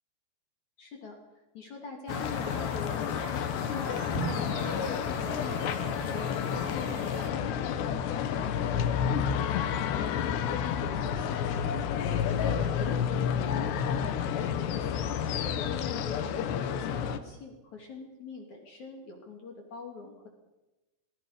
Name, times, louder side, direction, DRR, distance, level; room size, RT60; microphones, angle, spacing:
voice 1, 0.8-1.2 1.5-4.0 4.4-7.9 8.4-11.7 12.3-15.3 15.8-20.3, left 4 dB, 50° left, 1 dB, 3.8 m, -44 dB
sound 1, 2.1-17.2, left 8 dB, 85° left, 3.4 m, -30 dB
sound 2, 2.1-7.3, right 5 dB, 45° right, 2.5 m, -43 dB
Drum, 4.1-6.2, right 2 dB, 20° left, 2.8 m, -39 dB
26.0 x 21.0 x 5.2 m, 1.1 s
omnidirectional pair, 4.8 m